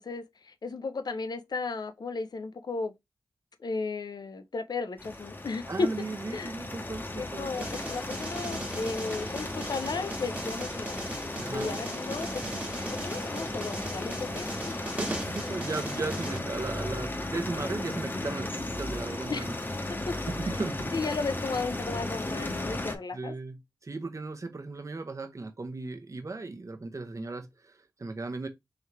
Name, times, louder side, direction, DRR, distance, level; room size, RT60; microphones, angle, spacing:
voice 1, 0.0-2.9 3.6-6.1 6.3-6.6 7.2-11.0 11.5-12.4 12.9-14.8 19.3-19.5 19.9-20.3 20.9-23.3, left 4 dB, 70° left, 0.6 m, -34 dB
sound 1, 5.0-22.9, left 2 dB, 30° left, 0.9 m, -35 dB
voice 2, 5.7-7.5 11.4-11.8 15.0-19.5 20.3-20.9 23.1-28.5, right 3 dB, 45° right, 0.8 m, -36 dB
sound 2, 7.5-16.4, right 1 dB, 20° right, 1.1 m, -39 dB
3.8 x 3.1 x 3.2 m
cardioid pair, 45°, 7 cm